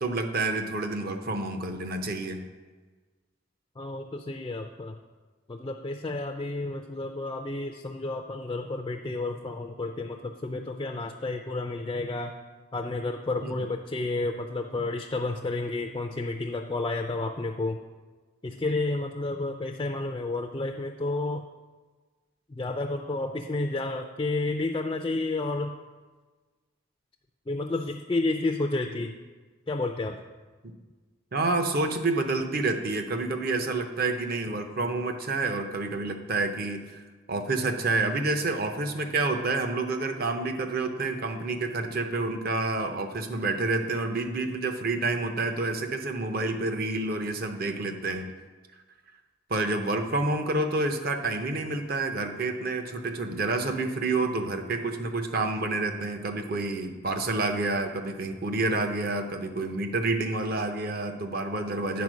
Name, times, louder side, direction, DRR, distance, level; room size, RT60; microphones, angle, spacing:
voice 1, 0.0-2.4 13.4-13.5 31.3-37.0 37.3-48.3 49.5-62.0, right 2 dB, 45° right, 6 dB, 0.7 m, -28 dB
voice 2, 3.8-4.9 5.5-12.3 12.7-17.8 18.4-21.4 22.5-25.8 27.5-29.2 29.7-30.2, left 2 dB, 20° left, 4 dB, 0.3 m, -31 dB
9.4 x 4.5 x 6.2 m, 1.4 s
head